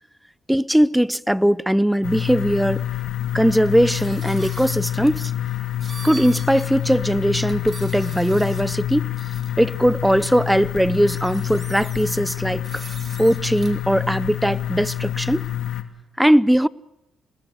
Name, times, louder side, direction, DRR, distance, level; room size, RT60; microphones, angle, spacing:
voice 1, 0.5-2.8 3.3-5.3 6.0-9.0 9.6-12.8 13.2-15.5 16.2-16.7, equal, 5° right, 0.7 m, -19 dB
sound 1, 2.0-15.8, left 12 dB, 65° left, 2.4 m, -27 dB
sound 2, 3.9-5.2 5.8-6.7 7.0-7.1 7.5-8.7 9.2-9.5 10.5-10.6 10.9-12.2 12.6-13.8, right 4 dB, 35° right, 3.6 m, -41 dB
27.0 x 20.0 x 6.4 m
cardioid pair, 90°, 0 cm